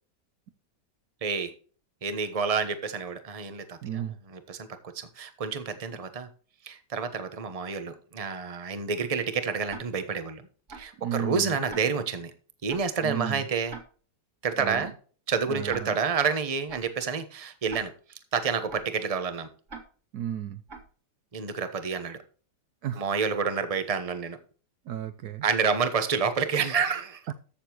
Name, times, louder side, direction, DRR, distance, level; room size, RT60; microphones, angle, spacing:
voice 1, 1.2-1.5 2.0-4.0 4.3-4.7 4.9-6.3 6.6-10.4 10.7-12.3 12.6-13.7 14.4-14.9 15.3-17.9 18.3-19.5 21.3-22.2 22.9-24.4 25.4-27.2, right 5 dB, 25° right, 9 dB, 1.0 m, -29 dB
voice 2, 3.8-4.1 11.0-11.6 13.0-13.4 14.6-14.9 15.5-16.0 20.1-20.6 22.8-23.1 24.9-25.5, right 10 dB, 65° right, 10 dB, 1.1 m, -33 dB
Tick-tock, 9.7-9.8 10.7-10.8 11.7-11.8 12.7-12.8 13.7-13.8 14.7-14.8 15.7-15.8 16.7-16.8 17.7-17.8 18.7-18.8 19.7-19.8 20.7-20.8, right 4 dB, 40° right, 2.6 m, -41 dB
14.0 x 6.8 x 3.0 m, 0.40 s
omnidirectional pair, 1.9 m